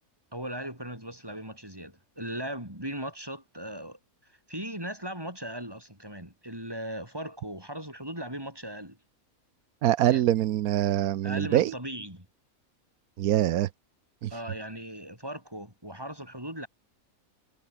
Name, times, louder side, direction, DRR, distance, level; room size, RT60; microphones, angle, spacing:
voice 1, 0.3-9.0 10.1-10.2 11.2-12.3 14.3-16.7, right 1 dB, 15° right, 7.3 m, -38 dB
voice 2, 9.8-11.7 13.2-13.7 14.2-14.3, right 12 dB, 85° right, 1.2 m, -24 dB
omnidirectional pair, 1.5 m